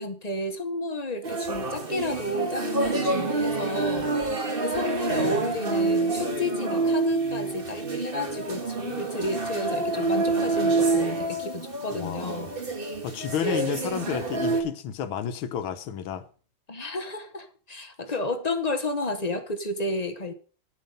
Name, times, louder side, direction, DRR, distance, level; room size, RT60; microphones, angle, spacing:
voice 1, 0.0-4.1 4.6-12.5 16.7-20.3, left 2 dB, 35° left, 0.6 m, -32 dB
sound 1, 1.2-14.6, right 3 dB, 30° right, 1.8 m, -27 dB
voice 2, 11.9-12.4 13.0-16.3, left 8 dB, 90° left, 1.8 m, -31 dB
9.8 x 9.3 x 5.3 m
omnidirectional pair, 2.2 m